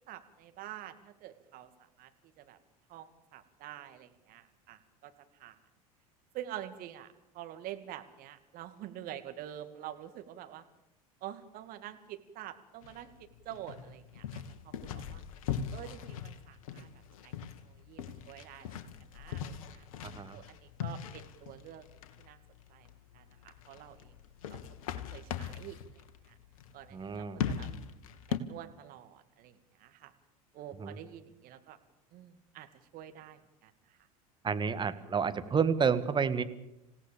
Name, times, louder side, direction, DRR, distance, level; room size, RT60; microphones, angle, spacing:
voice 1, 0.1-2.1 2.4-2.6 2.9-5.1 5.4-5.6 6.3-10.6 11.2-15.2 15.7-16.9 17.2-17.3 17.6-18.8 19.1-19.9 20.3-21.9 22.2-22.4 22.7-22.9 23.1-24.1 24.5-24.6 24.9-26.4 26.7-27.7 28.3-30.1 30.5-31.8 32.1-32.7 32.9-34.0, right 12 dB, 50° right, 9 dB, 2.2 m, -47 dB
sound 1, 12.8-28.4, left 8 dB, 65° left, 1.6 m, -41 dB
voice 2, 20.0-20.4 26.9-27.4 30.8-31.0 34.4-36.4, right 6 dB, 25° right, 11 dB, 1.8 m, -30 dB
27.0 x 17.0 x 7.1 m, 0.89 s
hypercardioid pair, 75°, 19 cm